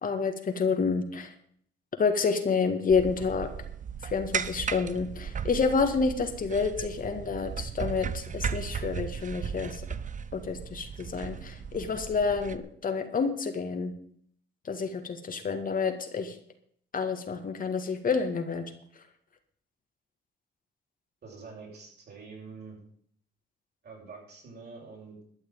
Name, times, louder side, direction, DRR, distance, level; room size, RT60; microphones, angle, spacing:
voice 1, 0.0-1.3 2.0-3.5 4.0-9.8 10.3-13.9 14.7-16.4 16.9-18.6, left 5 dB, 45° left, 6 dB, 1.9 m, -29 dB
Workman On Roof Scraping, 2.9-12.6, right 7 dB, 40° right, 0.8 m, -36 dB
voice 2, 21.2-22.8 23.8-25.2, right 4 dB, 55° right, -1 dB, 7.0 m, -46 dB
12.5 x 6.5 x 9.4 m, 0.63 s
cardioid pair, 90°, 20 cm